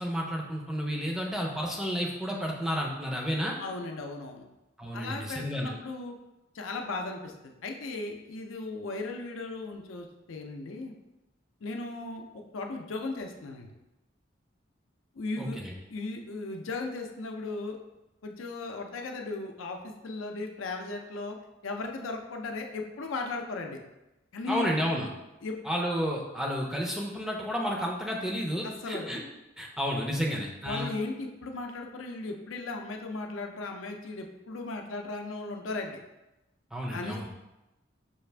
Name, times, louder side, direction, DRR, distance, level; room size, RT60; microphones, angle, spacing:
voice 1, 0.0-3.5 4.8-5.7 15.4-15.7 24.5-25.1 25.6-29.2 29.6-30.9 36.7-37.3, equal, ahead, -2 dB, 0.4 m, -31 dB
voice 2, 3.6-4.4 4.9-6.1 6.5-10.9 11.6-13.7 15.1-15.6 15.9-17.8 18.2-21.4 21.6-23.8 24.3-24.7 25.4-25.5 28.6-29.1 30.6-36.0 36.9-37.3, left 3 dB, 90° left, 3 dB, 0.5 m, -36 dB
5.5 x 2.5 x 3.3 m, 0.99 s
head